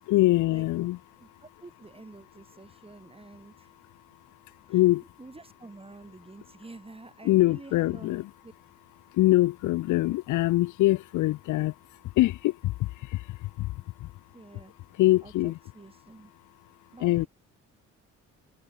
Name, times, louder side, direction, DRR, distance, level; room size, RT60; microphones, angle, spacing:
voice 1, 0.1-1.0 4.7-5.1 7.2-8.3 9.1-11.8 12.0-14.1 14.9-15.6 17.0-17.3, left 17 dB, 80° left, 0.6 m, -24 dB
voice 2, 1.2-3.7 4.7-4.8 5.2-8.2 8.4-8.5 14.3-14.7 15.2-16.3 16.9-17.3, right 3 dB, 20° right, 5.5 m, -48 dB
open air
cardioid pair, 90°, 30 cm